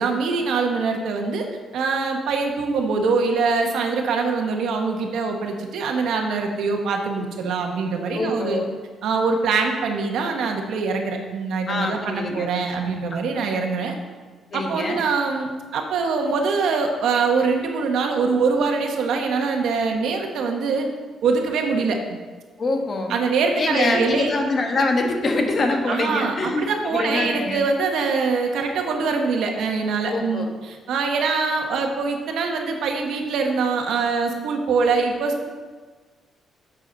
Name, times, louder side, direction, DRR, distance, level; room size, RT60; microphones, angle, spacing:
voice 1, 0.0-1.5 1.7-8.6 9.0-13.9 14.5-20.9 21.2-22.2 23.1-24.3 25.9-35.4, right 4 dB, 80° right, 3 dB, 1.3 m, -23 dB
voice 2, 8.1-8.7 11.7-12.5 13.1-13.2 14.5-15.0 22.6-23.1 23.6-27.7 30.1-30.5, left 2 dB, 45° left, 3 dB, 1.4 m, -24 dB
9.8 x 7.4 x 4.0 m, 1.4 s
cardioid pair, 90°, 0 cm